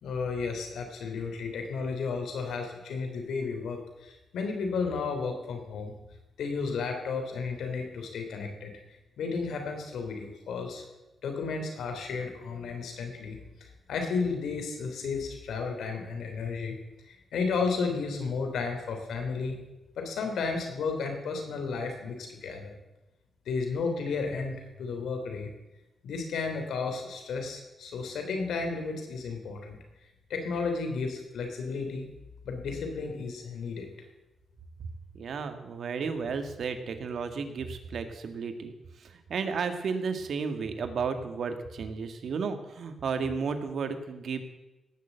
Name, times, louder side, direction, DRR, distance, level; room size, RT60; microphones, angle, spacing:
voice 1, 0.0-5.9 6.4-8.7 9.2-10.8 11.2-16.8 17.1-19.6 20.0-22.7 23.4-25.5 26.0-29.8 30.3-32.1 32.4-33.9, left 4 dB, 85° left, 4 dB, 3.3 m, -33 dB
voice 2, 35.1-38.7 39.0-44.4, right 5 dB, 70° right, 7 dB, 1.8 m, -33 dB
17.5 x 6.8 x 8.0 m, 1.0 s
cardioid pair, 80°, 0 cm